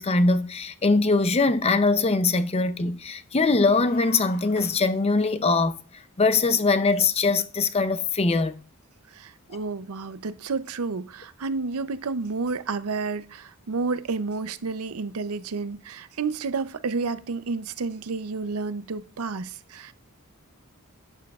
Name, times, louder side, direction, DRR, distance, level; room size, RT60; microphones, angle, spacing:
voice 1, 0.0-5.8 6.2-8.6, left 3 dB, 30° left, 0.6 m, -22 dB
sound 1, 3.5-5.5, left 2 dB, 55° left, 3.0 m, -46 dB
voice 2, 9.1-19.9, right 4 dB, 80° right, 0.6 m, -30 dB
11.5 x 8.1 x 2.4 m
head